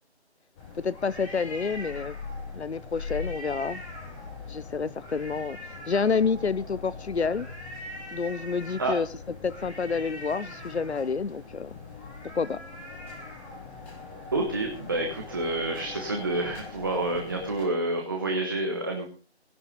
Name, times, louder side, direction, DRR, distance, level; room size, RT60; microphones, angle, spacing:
sound 1, 0.6-17.7, left 3 dB, 10° left, 3.1 m, -41 dB
voice 1, 0.8-2.2 2.5-3.8 4.5-7.5 8.1-9.1 9.4-11.7 12.3-12.6, left 5 dB, 75° left, 0.7 m, -29 dB
voice 2, 14.3-19.1, right 2 dB, 20° right, 1.3 m, -28 dB
18.0 x 11.0 x 5.2 m
figure-of-eight pair, 160°, 33 cm